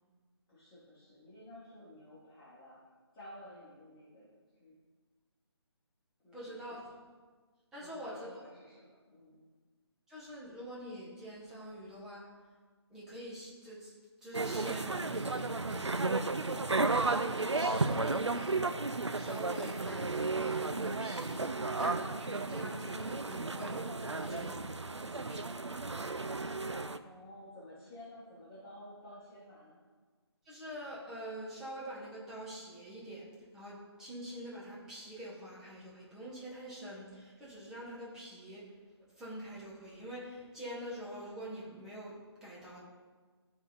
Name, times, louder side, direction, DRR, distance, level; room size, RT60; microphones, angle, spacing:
voice 1, 0.5-2.8 3.1-4.3 4.6-4.8 6.2-6.7 7.8-9.5 27.0-29.8, left 1 dB, 15° left, -11 dB, 1.5 m, -52 dB
voice 2, 6.3-6.9 7.7-8.3 10.1-12.3 12.9-13.9 14.2-18.6 19.1-21.5 21.8-25.8 30.4-33.3 33.5-38.7 39.2-42.8, equal, 5° right, -8 dB, 0.8 m, -46 dB
sound 1, 14.3-27.0, right 3 dB, 90° right, 0.4 m, -33 dB
11.0 x 3.9 x 3.9 m, 1.4 s
figure-of-eight pair, 150°, 14 cm